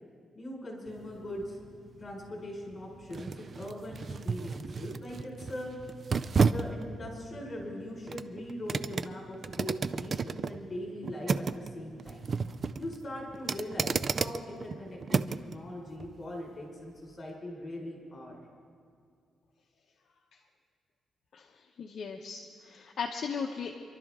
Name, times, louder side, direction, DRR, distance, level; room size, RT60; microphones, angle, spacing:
voice 1, 0.3-1.6 2.0-5.7 6.4-12.3 12.8-15.2 15.4-18.4, left 1 dB, 30° left, -2 dB, 4.9 m, -41 dB
sound 1, 0.9-15.6 16.0-16.1, right 5 dB, 40° right, 0.4 m, -33 dB
voice 2, 21.8-23.8, left 6 dB, 55° left, 1 dB, 0.9 m, -37 dB
27.0 x 12.0 x 3.7 m, 2.2 s
cardioid pair, 130°, 0 cm